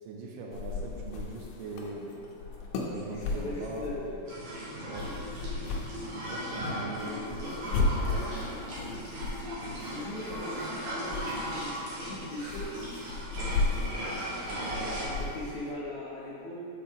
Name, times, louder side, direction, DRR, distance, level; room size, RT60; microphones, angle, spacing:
voice 1, 0.0-2.1 2.9-4.2 4.9-5.1 6.1-8.5 14.0-15.3, right 3 dB, 80° right, -1 dB, 2.2 m, -41 dB
sound 1, 0.5-15.7, left 3 dB, 85° left, 2.4 m, -36 dB
voice 2, 2.9-4.1 5.0-5.3 9.8-12.7 15.1-16.7, left 1 dB, 70° left, -7 dB, 1.9 m, -40 dB
sound 2, 4.3-15.1, equal, 60° right, 1.8 m, -37 dB
7.4 x 4.5 x 3.5 m, 2.7 s
omnidirectional pair, 4.1 m